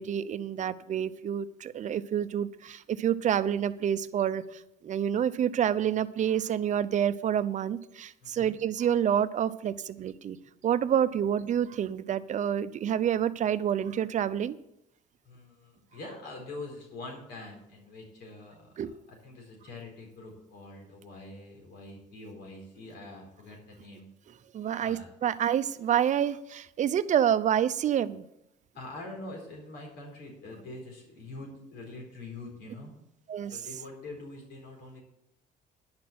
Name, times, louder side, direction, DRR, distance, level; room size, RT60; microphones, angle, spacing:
voice 1, 0.0-4.4 4.8-10.4 10.6-14.6 18.8-18.9 24.5-28.2 33.3-33.5, right 9 dB, 45° right, 13 dB, 0.6 m, -28 dB
voice 2, 8.2-8.6 15.2-24.0 24.8-25.3 28.7-32.9 33.4-35.0, left 2 dB, 80° left, 1 dB, 4.3 m, -44 dB
10.5 x 6.1 x 7.7 m, 0.82 s
cardioid pair, 110°, 17 cm